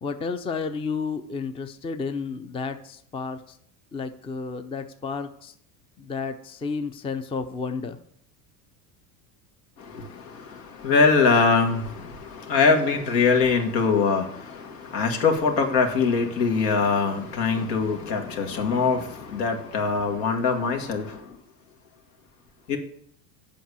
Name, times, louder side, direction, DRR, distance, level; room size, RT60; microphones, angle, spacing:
voice 1, 0.0-3.6 3.9-5.5 6.0-8.0, left 5 dB, 10° left, 0.5 m, -31 dB
voice 2, 9.8-21.2 22.7-22.8, left 4 dB, 75° left, 1.8 m, -23 dB
7.7 x 5.3 x 6.9 m
supercardioid pair, 100°, 48 cm